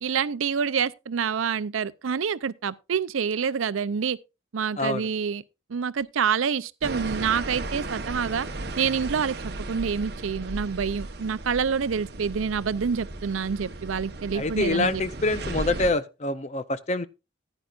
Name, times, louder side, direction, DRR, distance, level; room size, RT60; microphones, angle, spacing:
voice 1, 0.0-4.2 4.5-5.4 5.7-8.5 8.8-15.0, right 6 dB, 85° right, 0.5 m, -27 dB
voice 2, 4.8-5.1 14.3-17.1, left 2 dB, 35° left, 0.6 m, -26 dB
sound 1, 6.8-15.9, right 2 dB, 50° right, 1.0 m, -35 dB
14.5 x 9.9 x 2.4 m
head